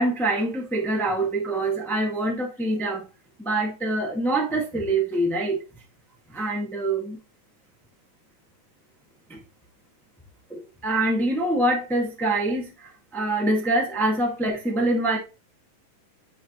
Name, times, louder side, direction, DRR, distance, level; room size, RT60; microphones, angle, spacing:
voice 1, 0.0-3.0 3.4-5.6 6.3-7.2 9.3-9.4 10.5-12.7 13.1-15.2, right 2 dB, ahead, 0.6 m, -25 dB
9.8 x 4.9 x 3.1 m
omnidirectional pair, 3.9 m